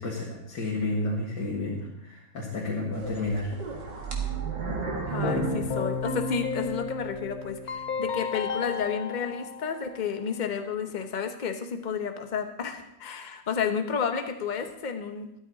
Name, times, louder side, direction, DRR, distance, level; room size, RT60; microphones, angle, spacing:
voice 1, 0.0-3.6, left 2 dB, 80° left, -5 dB, 2.5 m, -31 dB
sound 1, 2.9-6.7 7.1-7.2 7.9-8.0, right 5 dB, 75° right, 2.5 m, -33 dB
voice 2, 5.1-15.3, left 6 dB, 35° left, 7 dB, 0.9 m, -31 dB
Keyboard (musical), 5.2-10.2, left 4 dB, 60° left, 1.4 m, -33 dB
13.0 x 12.5 x 4.1 m, 0.81 s
omnidirectional pair, 1.9 m